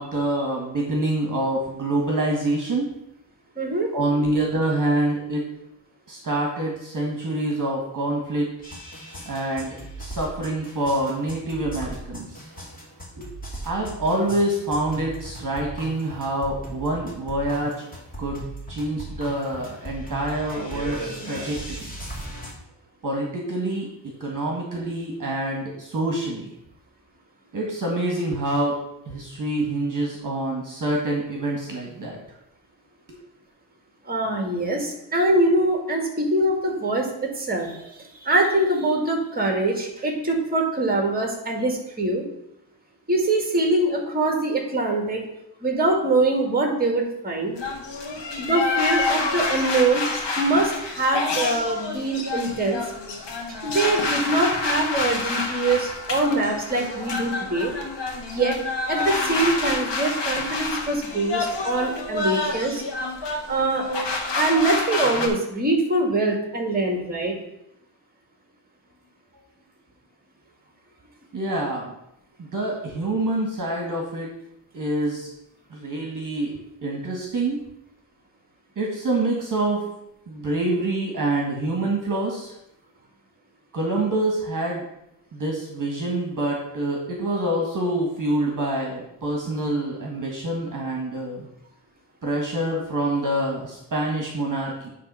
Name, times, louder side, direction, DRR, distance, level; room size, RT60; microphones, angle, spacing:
voice 1, 0.0-2.9 3.9-5.5 6.1-8.5 9.2-12.5 13.2-13.3 13.6-17.8 18.2-18.4 18.7-21.8 23.0-26.5 27.5-28.8 29.0-32.2 33.1-33.2 71.3-71.9 72.4-74.3 74.7-75.3 75.7-77.6 78.7-79.9 80.3-82.5 83.7-84.8 85.3-91.5 92.2-94.9, right 1 dB, 45° right, 0 dB, 1.7 m, -26 dB
voice 2, 3.6-3.9 34.1-37.1 37.3-42.2 43.1-45.2 45.6-47.5 48.4-50.1 50.4-52.8 53.6-57.7 58.3-58.5 58.9-62.8 63.5-63.9 64.3-67.3, right 2 dB, 20° right, 2 dB, 2.1 m, -23 dB
sound 1, 8.6-22.5, right 1 dB, 20° left, 2.5 m, -37 dB
sound 2, 47.6-65.3, left 3 dB, 65° left, 1.5 m, -28 dB
10.0 x 3.4 x 5.5 m, 0.81 s
cardioid pair, 95°, 44 cm